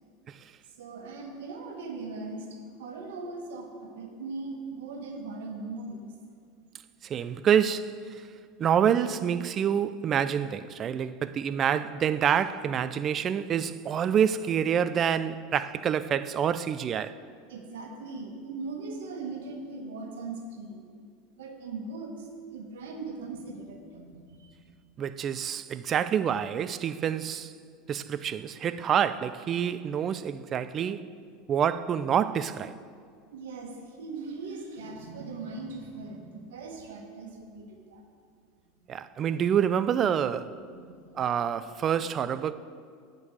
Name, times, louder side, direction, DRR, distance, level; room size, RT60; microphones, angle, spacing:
voice 1, 0.8-6.1 17.5-20.9 21.3-24.8 27.3-27.4 33.3-38.0 40.8-41.2, right 3 dB, 75° right, 1.2 m, -40 dB
voice 2, 7.0-8.2 8.6-17.2 25.0-27.5 27.9-31.1 31.5-32.8 38.9-40.6 41.1-42.5, right 8 dB, 40° right, 0.3 m, -27 dB
7.9 x 5.2 x 7.4 m
hypercardioid pair, 85°, 0 cm